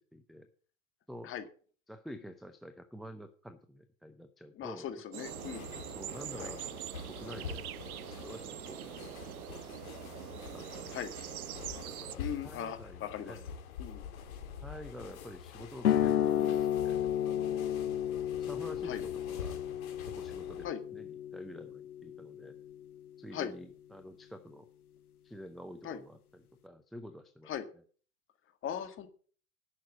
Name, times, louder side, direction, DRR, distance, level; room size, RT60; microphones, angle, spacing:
voice 1, 0.1-0.5 1.1-1.3 1.9-4.9 5.2-5.3 5.9-6.7 7.1-10.0 10.5-10.9 11.9-13.5 14.6-17.7 18.4-19.6 20.1-22.6 23.2-24.7 25.2-27.8, equal, ahead, 9 dB, 0.5 m, -49 dB
voice 2, 4.5-5.6 6.4-6.5 10.9-11.1 12.2-13.4 13.8-14.0 18.8-19.0 20.6-20.8 23.3-23.5 25.8-26.0 27.5-27.7 28.6-29.1, left 9 dB, 30° left, 8 dB, 1.8 m, -39 dB
sound 1, 5.1-12.2, right 13 dB, 75° right, 0.6 m, -44 dB
sound 2, 5.2-20.7, left 6 dB, 70° left, 2.5 m, -46 dB
sound 3, 15.8-23.0, left 10 dB, 90° left, 0.8 m, -32 dB
10.5 x 6.5 x 8.2 m, 0.43 s
hypercardioid pair, 110°, 43 cm